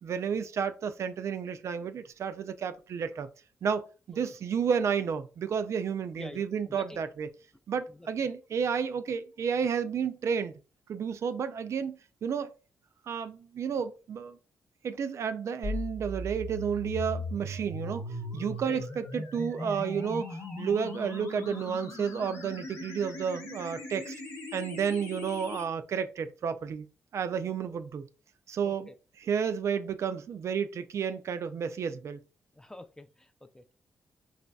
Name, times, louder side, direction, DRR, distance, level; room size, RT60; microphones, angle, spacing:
voice 1, 0.0-3.3 3.6-7.3 7.7-10.5 10.9-12.5 13.1-14.4 14.8-18.0 18.3-20.3 20.6-24.2 24.5-26.9 27.1-28.1 28.5-28.9 29.2-32.2, right 7 dB, 60° right, 0.4 m, -31 dB
voice 2, 6.2-7.0 8.0-8.1 18.7-18.8 28.6-29.0 32.6-33.7, left 1 dB, 10° left, 0.4 m, -46 dB
sound 1, 15.6-25.6, left 1 dB, 70° left, 1.0 m, -39 dB
4.0 x 3.1 x 2.3 m
cardioid pair, 70°, 5 cm